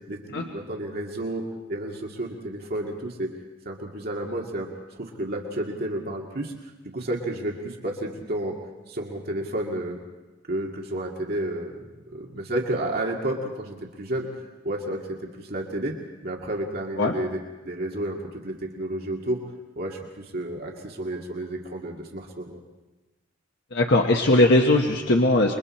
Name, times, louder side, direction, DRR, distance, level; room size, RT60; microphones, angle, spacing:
voice 1, 0.0-1.4 1.7-3.3 3.7-4.7 5.0-6.5 6.9-8.6 8.9-10.0 10.5-14.3 14.6-15.9 16.2-19.4 19.8-22.6, right 1 dB, 55° right, 0 dB, 2.2 m, -31 dB
voice 2, 23.7-25.6, left 1 dB, 65° left, 1 dB, 1.2 m, -19 dB
28.0 x 23.0 x 4.3 m, 1.1 s
head